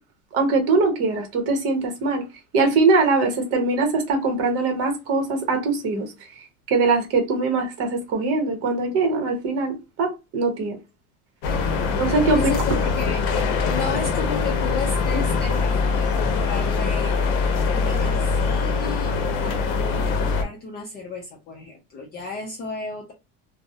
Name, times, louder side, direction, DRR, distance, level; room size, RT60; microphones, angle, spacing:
voice 1, 0.3-2.2 2.5-6.1 6.7-10.8 12.0-12.4 15.1-15.2, right 3 dB, 45° right, 0.8 m, -22 dB
sound 1, 11.4-20.4, left 4 dB, 65° left, 0.7 m, -23 dB
voice 2, 12.3-13.2 13.7-17.3 17.7-23.1, left 4 dB, 30° left, 0.5 m, -33 dB
2.2 x 2.0 x 2.7 m
cardioid pair, 155°, 33 cm